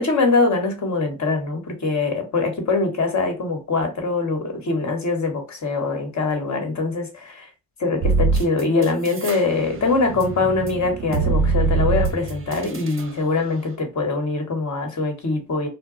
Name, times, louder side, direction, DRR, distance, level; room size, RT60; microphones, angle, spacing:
voice 1, 0.0-7.5 7.8-15.7, left 3 dB, 45° left, 1.4 m, -23 dB
sound 1, 8.0-9.4 9.8-13.0, right 4 dB, 35° right, 0.7 m, -23 dB
2.2 x 2.2 x 3.8 m
supercardioid pair, 70°, 39 cm